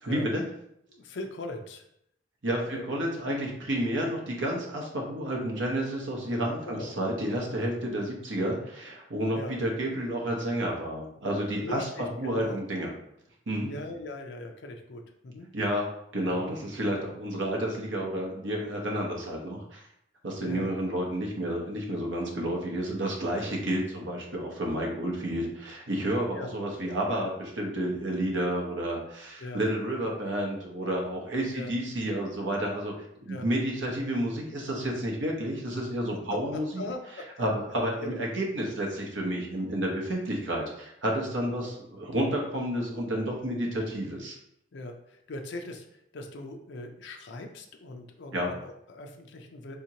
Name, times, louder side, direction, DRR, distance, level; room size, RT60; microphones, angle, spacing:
voice 1, 0.0-0.4 2.4-12.9 13.5-13.7 15.5-19.8 20.2-32.9 33.2-36.8 37.4-44.3 48.3-48.5, right 1 dB, 70° right, 0 dB, 0.8 m, -30 dB
voice 2, 0.9-1.8 2.7-2.8 6.7-7.0 9.3-9.6 11.6-12.6 13.7-15.5 16.2-16.5 20.4-20.8 26.3-26.5 29.4-29.6 31.5-31.7 33.3-33.5 36.1-37.5 38.0-38.2 41.6-41.7 44.7-49.8, left 2 dB, 60° left, 4 dB, 0.5 m, -40 dB
3.5 x 2.8 x 2.8 m, 0.75 s
head